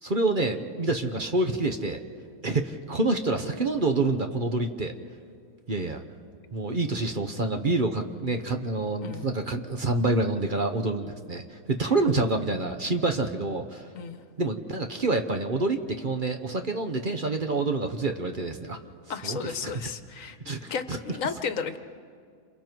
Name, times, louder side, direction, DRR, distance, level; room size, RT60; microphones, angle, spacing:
voice 1, 0.0-2.0 2.4-4.9 5.7-6.0 6.5-13.9 14.4-18.8 19.2-19.4 20.4-21.0, right 2 dB, 40° right, 5 dB, 1.2 m, -27 dB
voice 2, 19.1-20.4 20.7-21.8, left 6 dB, 70° left, 10 dB, 1.3 m, -33 dB
28.5 x 27.5 x 4.7 m, 2.2 s
omnidirectional pair, 1.5 m